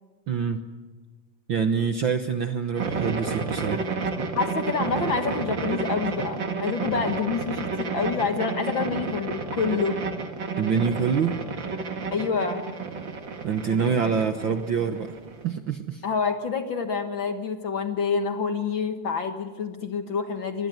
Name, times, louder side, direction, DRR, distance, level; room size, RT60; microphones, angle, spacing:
voice 1, 0.3-0.6 1.5-3.9 10.6-11.4 13.4-15.1 15.4-16.0, right 6 dB, 60° right, 8 dB, 1.4 m, -25 dB
sound 1, 2.8-15.5, right 4 dB, 40° right, 2.4 m, -31 dB
voice 2, 4.4-10.0 12.1-12.6 16.0-20.7, left 5 dB, 50° left, 7 dB, 1.8 m, -27 dB
25.5 x 19.5 x 9.5 m, 1.3 s
omnidirectional pair, 3.3 m